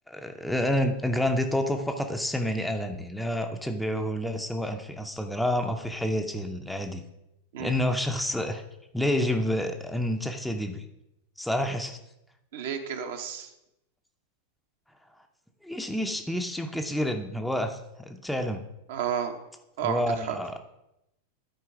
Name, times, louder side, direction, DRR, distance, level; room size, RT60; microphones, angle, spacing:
voice 1, 0.1-7.0 7.6-8.6 8.9-10.8 11.4-12.0 15.6-18.6 19.8-20.7, left 1 dB, ahead, 5 dB, 0.6 m, -29 dB
voice 2, 12.5-13.5 18.9-19.4 19.8-20.4, right 8 dB, 55° right, 5 dB, 1.0 m, -31 dB
12.0 x 4.5 x 4.8 m, 0.88 s
figure-of-eight pair, 90°, 0 cm